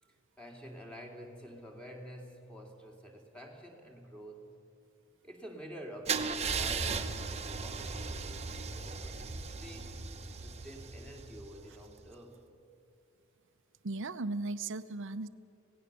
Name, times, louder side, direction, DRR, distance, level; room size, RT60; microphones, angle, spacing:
voice 1, 0.4-4.4 5.2-10.0 10.4-12.5, equal, 5° left, 1 dB, 2.6 m, -49 dB
Car / Engine starting / Idling, 6.1-11.9, right 5 dB, 30° right, 1.1 m, -37 dB
voice 2, 13.8-15.3, right 2 dB, 60° right, 13 dB, 0.8 m, -36 dB
26.5 x 17.5 x 6.8 m, 2.6 s
head